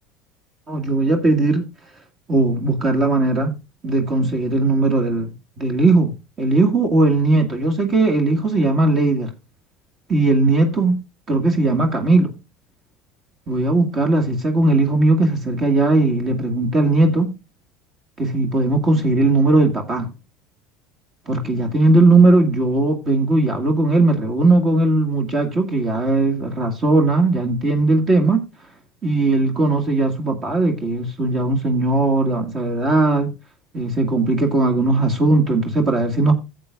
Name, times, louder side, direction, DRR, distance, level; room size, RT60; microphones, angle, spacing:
voice 1, 0.7-1.7 2.3-3.5 3.8-6.1 6.4-9.3 10.1-10.9 11.3-12.3 13.5-17.3 18.2-20.1 21.3-28.4 29.0-33.3 33.7-36.3, right 2 dB, 35° right, 1.9 m, -18 dB
14.0 x 8.1 x 2.4 m
supercardioid pair, 125°, 0 cm